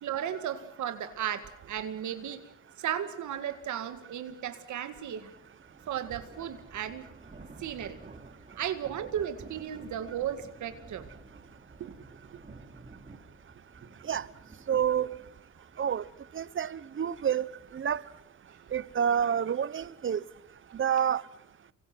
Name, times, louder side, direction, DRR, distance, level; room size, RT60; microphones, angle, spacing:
voice 1, 0.0-2.4 2.8-5.3 5.9-7.1 7.6-8.0 8.6-11.1 11.8-12.0 12.3-12.4, right 10 dB, 70° right, 2.1 m, -35 dB
sound 1, 5.0-20.8, right 3 dB, 25° right, 4.1 m, -53 dB
voice 2, 14.7-15.2 15.8-16.0 16.3-18.0 18.7-20.2 20.7-21.2, right 8 dB, 40° right, 1.0 m, -28 dB
29.0 x 24.5 x 6.1 m
cardioid pair, 90°, 30 cm